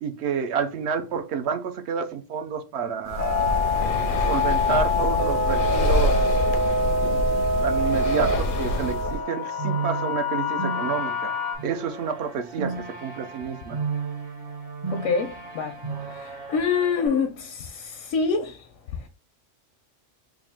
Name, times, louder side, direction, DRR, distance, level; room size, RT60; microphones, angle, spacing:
voice 1, 0.0-3.6 4.2-6.1 7.6-11.3 11.6-13.8, right 6 dB, 65° right, 0.8 m, -29 dB
Breathing, 3.1-9.2, left 2 dB, 60° left, 0.6 m, -26 dB
sound 1, 3.2-11.5, left 2 dB, 20° right, 0.4 m, -25 dB
sound 2, 9.1-17.1, right 5 dB, 40° right, 1.0 m, -34 dB
voice 2, 14.9-15.8 16.1-18.6, left 5 dB, 85° left, 1.0 m, -26 dB
3.6 x 2.5 x 3.4 m
omnidirectional pair, 1.3 m